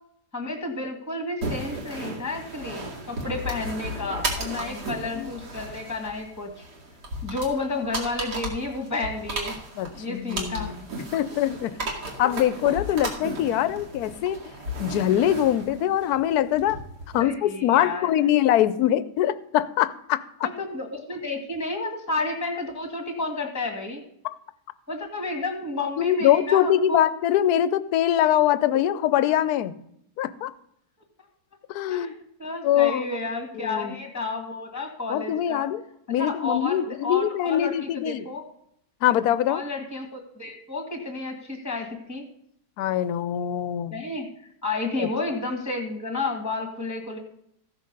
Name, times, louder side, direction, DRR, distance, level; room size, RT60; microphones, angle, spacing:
voice 1, 0.3-6.7 7.2-9.6 9.9-10.7 12.9-13.2 17.2-18.1 20.4-24.0 24.9-27.0 31.9-32.1 32.4-35.7 36.2-38.4 39.5-42.2 43.9-44.3 44.6-47.2, left 3 dB, 10° left, 3 dB, 1.8 m, -31 dB
sound 1, 1.4-17.2, right 1 dB, 70° right, 2.8 m, -35 dB
voice 2, 9.8-10.8 11.1-11.7 12.2-14.4 14.8-16.8 17.1-20.2 26.0-29.7 30.2-30.5 31.7-32.1 32.6-33.0 33.5-34.0 35.1-35.8 36.1-38.2 39.0-39.6 42.8-44.0 45.0-45.1, left 11 dB, 70° left, 15 dB, 1.1 m, -23 dB
15.0 x 6.4 x 5.3 m, 0.74 s
omnidirectional pair, 1.8 m